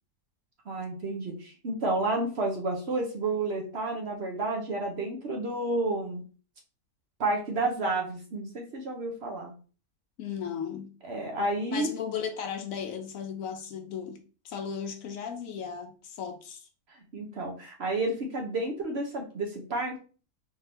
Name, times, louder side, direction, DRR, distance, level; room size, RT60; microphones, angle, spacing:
voice 1, 0.7-6.2 7.2-9.5 11.0-11.9 17.1-20.0, right 2 dB, 55° right, 0.8 m, -30 dB
voice 2, 10.2-10.9 11.7-14.2 14.4-16.7, left 7 dB, 70° left, 0.9 m, -36 dB
3.6 x 2.7 x 3.3 m
omnidirectional pair, 1.6 m